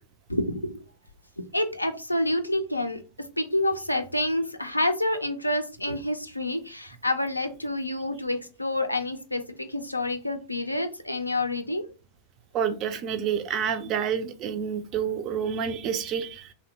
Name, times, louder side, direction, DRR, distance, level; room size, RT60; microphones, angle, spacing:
voice 1, 0.3-0.7 1.4-3.0 3.4-11.9, left 1 dB, 85° left, 7 dB, 0.3 m, -28 dB
voice 2, 12.5-16.5, right 7 dB, 35° right, 10 dB, 0.4 m, -28 dB
2.6 x 2.1 x 2.7 m, 0.32 s
figure-of-eight pair, 90°, 0 cm